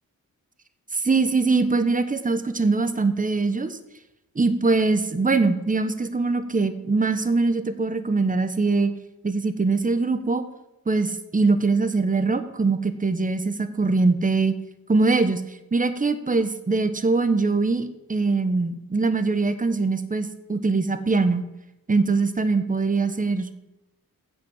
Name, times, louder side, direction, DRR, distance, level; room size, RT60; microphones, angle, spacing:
voice 1, 0.9-3.8 4.3-8.9 9.2-10.4 10.9-14.6 14.9-21.4 21.9-23.6, right 3 dB, 20° right, 10 dB, 1.0 m, -22 dB
15.5 x 5.1 x 7.3 m, 0.94 s
wide cardioid pair, 95°, 35 cm